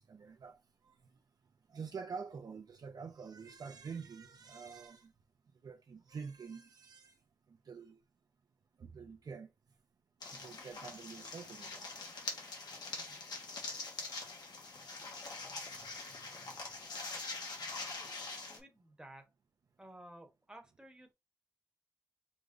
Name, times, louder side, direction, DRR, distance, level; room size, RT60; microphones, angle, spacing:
voice 1, 0.1-0.6 0.9-1.0 1.7-5.1 5.6-7.1 7.5-8.0 8.8-9.5 10.3-11.9, right 5 dB, 70° right, 0.7 m, -47 dB
sound 1, 10.2-18.6, left 3 dB, 85° left, 1.4 m, -44 dB
voice 2, 17.7-18.1 18.5-19.3 19.8-21.1, right 1 dB, 10° right, 1.1 m, -55 dB
5.2 x 3.3 x 2.6 m
wide cardioid pair, 130°, 7 cm